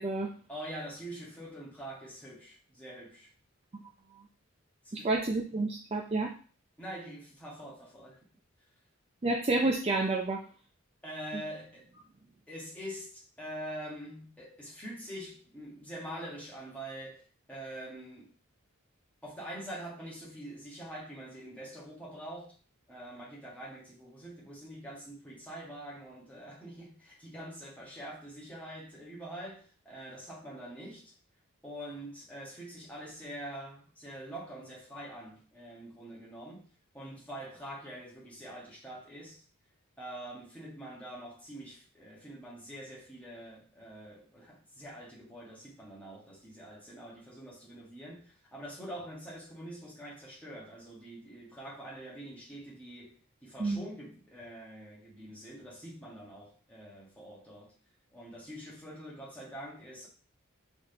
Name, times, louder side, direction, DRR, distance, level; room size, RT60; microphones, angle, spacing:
voice 1, 0.5-3.3 4.8-5.1 6.8-8.2 11.0-11.9 12.5-18.3 19.2-22.5 22.9-31.1 31.6-36.7 36.9-39.4 40.0-57.7 58.1-60.1, right 1 dB, 5° left, 1.5 m, -45 dB
voice 2, 4.9-6.3 9.2-10.4 53.6-53.8, right 2 dB, 30° right, 0.4 m, -29 dB
3.9 x 3.5 x 3.9 m
head